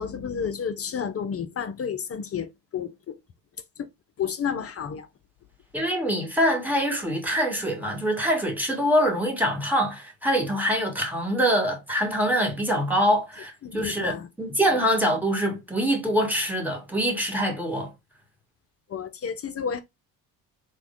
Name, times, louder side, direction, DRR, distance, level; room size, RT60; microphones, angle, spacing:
voice 1, 0.0-3.2 3.8-3.9 4.2-5.1 13.6-14.3 14.7-14.9 18.9-19.8, left 7 dB, 30° left, 0.5 m, -31 dB
voice 2, 5.7-17.9, equal, 5° right, 1.5 m, -24 dB
3.5 x 2.2 x 3.5 m
hypercardioid pair, 65°, 47 cm